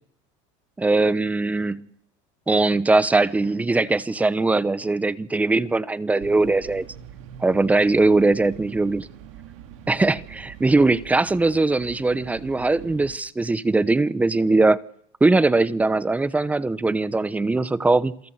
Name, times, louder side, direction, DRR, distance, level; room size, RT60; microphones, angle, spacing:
voice 1, 0.8-1.8 2.5-6.9 7.4-9.1 9.9-14.8 15.2-18.2, right 3 dB, 10° right, 0.9 m, -20 dB
sound 1, 6.2-13.2, right 7 dB, 85° right, 3.2 m, -43 dB
28.0 x 17.5 x 8.0 m
supercardioid pair, 135°, 16 cm